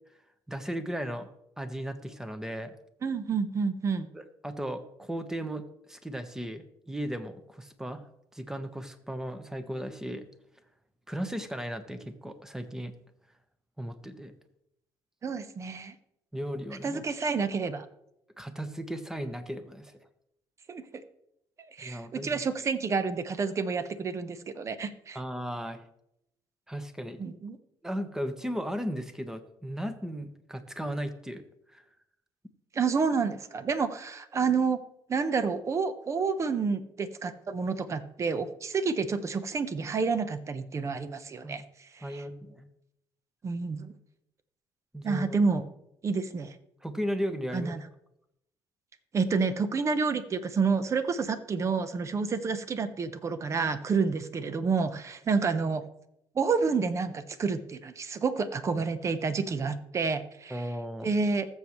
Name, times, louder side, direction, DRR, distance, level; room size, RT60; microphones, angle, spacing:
voice 1, 0.5-1.3 1.6-2.7 4.1-8.0 8.3-10.2 11.1-12.9 13.8-14.3 16.3-17.0 18.4-19.9 21.8-22.4 25.1-25.8 26.7-27.2 27.8-31.4 31.7-31.8 41.4-41.6 42.0-42.6 44.9-45.4 46.8-47.7 60.5-61.1, equal, 5° right, 9 dB, 1.2 m, -36 dB
voice 2, 3.0-4.1 15.2-15.9 16.8-17.8 20.7-20.8 21.8-25.2 27.2-27.6 32.7-34.8 35.1-41.6 42.0-42.2 43.4-43.9 45.0-45.6 46.0-46.5 47.5-47.8 49.1-55.8 56.3-60.6 61.0-61.5, right 5 dB, 35° right, 11 dB, 1.0 m, -29 dB
20.0 x 7.4 x 3.2 m, 0.81 s
cardioid pair, 95°, 8 cm